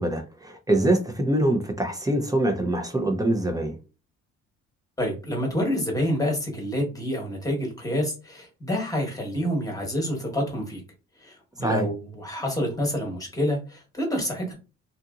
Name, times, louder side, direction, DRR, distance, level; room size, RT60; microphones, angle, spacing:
voice 1, 0.0-3.7 11.6-11.9, right 1 dB, 10° right, 0.6 m, -24 dB
voice 2, 5.0-10.8 11.2-14.5, equal, 10° left, 1.1 m, -28 dB
2.8 x 2.5 x 2.4 m
cardioid pair, 90°, 30 cm